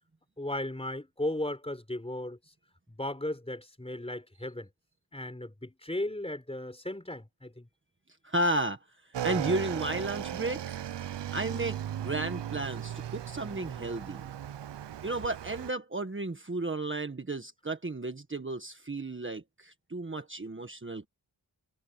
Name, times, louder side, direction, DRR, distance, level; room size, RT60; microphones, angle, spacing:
voice 1, 0.4-2.4 2.9-4.7 5.1-7.7, left 1 dB, 15° left, 4.1 m, -36 dB
voice 2, 8.2-8.8 9.2-10.8 11.3-14.2 15.0-21.1, right 2 dB, 30° right, 1.5 m, -33 dB
Motorcycle / Engine, 9.1-15.7, right 11 dB, 80° right, 0.7 m, -37 dB
wide cardioid pair, 80°, 42 cm